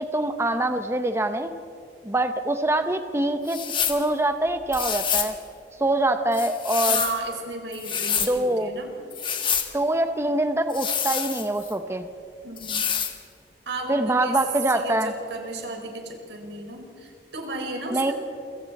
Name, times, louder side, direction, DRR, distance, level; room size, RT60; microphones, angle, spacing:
voice 1, 0.0-1.5 2.0-3.6 3.9-5.4 5.8-7.0 8.2-8.7 9.7-12.1 13.9-15.1 17.9-18.1, right 1 dB, 15° right, 8 dB, 0.8 m, -24 dB
sound 1, 3.5-4.0 4.7-5.3 6.3-7.2 7.7-8.3 9.1-9.7 10.7-11.7 12.6-13.2, left 7 dB, 30° left, 1.6 m, -27 dB
voice 2, 6.9-8.9 12.4-12.9 13.7-14.4 14.7-18.1, right 2 dB, 90° right, 2 dB, 4.6 m, -34 dB
28.5 x 24.5 x 4.2 m, 2.5 s
head